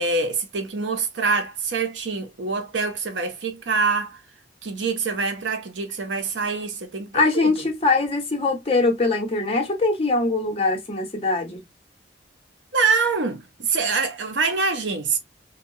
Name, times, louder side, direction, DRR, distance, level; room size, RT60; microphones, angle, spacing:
voice 1, 0.0-4.2 4.6-7.5 12.7-15.2, right 4 dB, 90° right, 0.7 m, -25 dB
voice 2, 7.1-11.6, left 3 dB, 30° left, 0.8 m, -22 dB
2.7 x 2.3 x 2.7 m
head